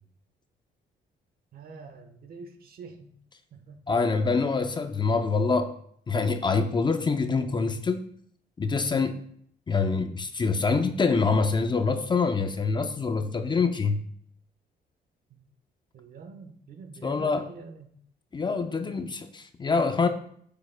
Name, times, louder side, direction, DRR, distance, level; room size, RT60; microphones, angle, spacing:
voice 1, 1.5-3.1 3.5-3.9 15.3-15.4 15.9-17.9 18.7-19.1, right 4 dB, 60° right, 6 dB, 1.1 m, -46 dB
voice 2, 3.9-5.7 6.1-8.0 8.6-9.2 9.7-14.0 17.0-17.4 18.3-20.1, left 4 dB, 25° left, 8 dB, 0.5 m, -25 dB
9.4 x 6.8 x 2.2 m, 0.64 s
cardioid pair, 115°, 18 cm